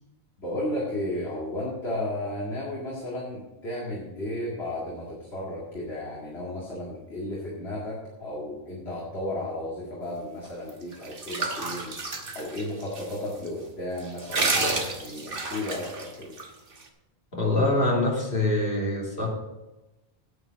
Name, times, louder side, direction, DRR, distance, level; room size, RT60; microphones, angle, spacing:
voice 1, 0.4-11.9 12.3-16.4, left 1 dB, 80° left, -5 dB, 2.4 m, -34 dB
sound 1, 10.7-13.1 13.5-13.6 14.0-16.5, right 3 dB, 60° right, 1.4 m, -30 dB
voice 2, 17.3-19.3, left 2 dB, 60° left, -3 dB, 2.9 m, -24 dB
9.5 x 8.2 x 5.2 m, 1.0 s
omnidirectional pair, 1.1 m